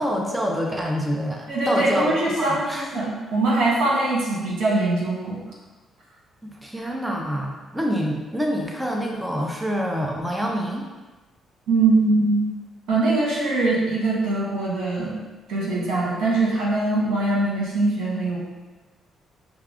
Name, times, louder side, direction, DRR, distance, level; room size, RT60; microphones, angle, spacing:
voice 1, 0.0-2.9 6.4-10.9, equal, 10° right, 0 dB, 0.6 m, -26 dB
voice 2, 1.5-5.4 11.7-12.4 12.9-15.1 15.5-18.4, right 2 dB, 85° right, -5 dB, 1.3 m, -22 dB
5.7 x 2.2 x 3.6 m, 1.2 s
cardioid pair, 90°, 0 cm